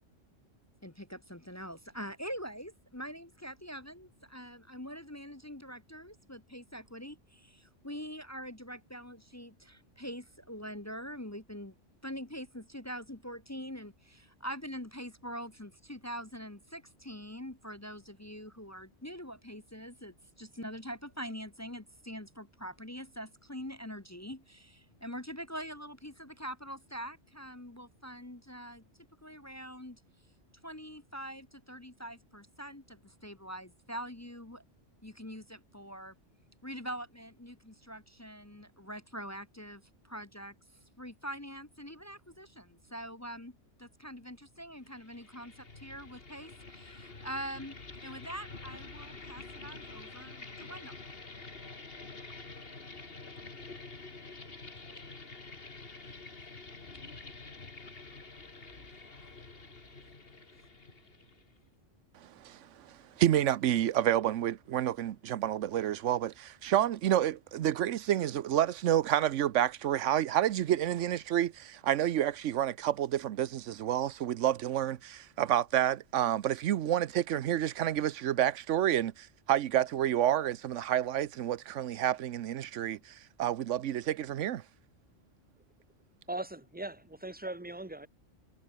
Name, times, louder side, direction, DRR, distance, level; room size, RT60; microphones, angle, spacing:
voice 1, 0.8-11.7 12.0-28.8 29.2-30.0 30.6-34.6 35.0-36.1 36.6-40.5 41.0-47.8 48.0-50.9, equal, 15° left, 0.9 m, -44 dB
sound 1, 44.9-61.6, left 3 dB, 50° left, 2.7 m, -48 dB
voice 2, 62.2-84.6, right 11 dB, 80° right, 1.0 m, -29 dB
voice 3, 86.3-88.1, right 2 dB, 10° right, 1.1 m, -39 dB
omnidirectional pair, 1.2 m